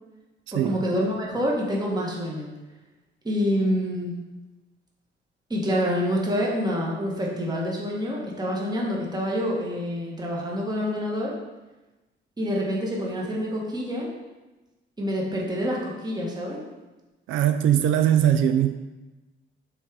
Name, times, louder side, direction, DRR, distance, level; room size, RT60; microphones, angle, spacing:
voice 1, 0.5-2.5 3.2-4.2 5.5-11.4 12.4-14.1 15.0-16.6, equal, 20° right, -3 dB, 1.5 m, -27 dB
voice 2, 17.3-18.7, right 10 dB, 80° right, 8 dB, 0.4 m, -20 dB
6.8 x 3.8 x 4.7 m, 1.1 s
cardioid pair, 90°, 20 cm